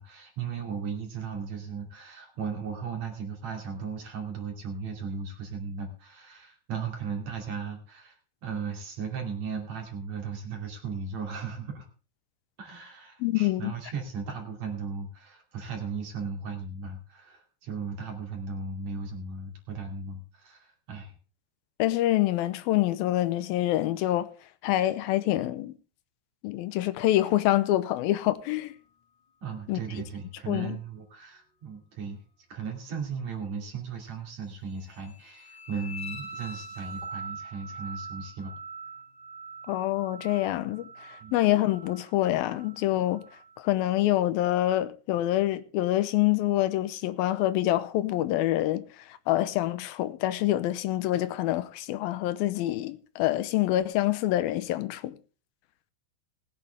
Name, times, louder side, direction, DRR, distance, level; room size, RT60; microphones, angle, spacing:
voice 1, 0.0-8.2 8.4-11.9 12.6-21.1 29.4-32.2 32.5-38.6 41.2-41.4, right 5 dB, 50° right, 3.6 m, -36 dB
voice 2, 13.2-13.7 21.8-24.3 24.6-25.8 26.4-28.7 29.7-29.8 30.5-30.8 39.7-43.2 43.6-55.2, left 14 dB, 85° left, 2.6 m, -26 dB
sound 1, 34.8-43.6, right 2 dB, 25° left, 1.3 m, -43 dB
20.0 x 9.1 x 3.4 m
omnidirectional pair, 4.2 m